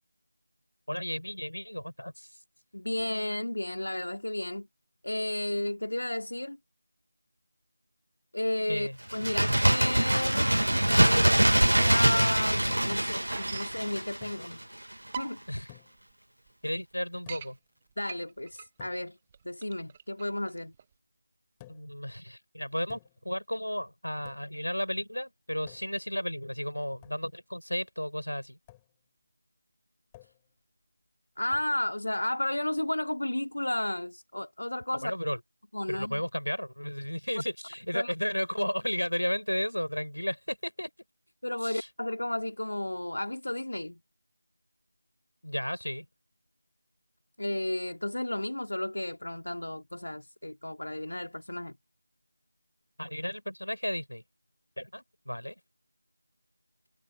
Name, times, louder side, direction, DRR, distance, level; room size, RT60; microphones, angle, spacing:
voice 1, 0.9-2.3 8.7-9.0 15.5-15.7 16.6-17.6 21.7-23.0 23.2-28.6 34.9-35.4 35.9-40.9 41.6-41.9 45.4-46.1 53.0-54.2 54.8-55.6, equal, 80° left, 8.0 m, -33 dB
voice 2, 2.7-4.7 5.0-6.6 8.3-14.6 15.2-15.6 18.0-19.2 19.4-20.7 31.4-35.1 35.7-36.2 37.9-38.1 41.4-44.0 47.4-51.7, left 1 dB, 65° left, 2.6 m, -33 dB
Bird, 9.1-14.6 14.9-15.0, right 1 dB, 70° right, 1.5 m, -24 dB
sound 1, 11.3-12.3 12.6-12.7 12.9-13.8 14.5-14.6 15.0-15.6 16.1-16.2 16.5-16.6 16.9-17.5 18.0-20.9, right 7 dB, 15° right, 0.5 m, -42 dB
sound 2, 14.2-14.5 15.7-16.1 17.3-17.6 18.8-19.1 21.6-22.0 22.9-23.3 24.2-24.6 25.7-26.1 27.0-27.3 28.7-28.9 30.1-30.5 31.5-31.8, left 16 dB, 10° left, 5.0 m, -54 dB
figure-of-eight pair, 165°, 0 cm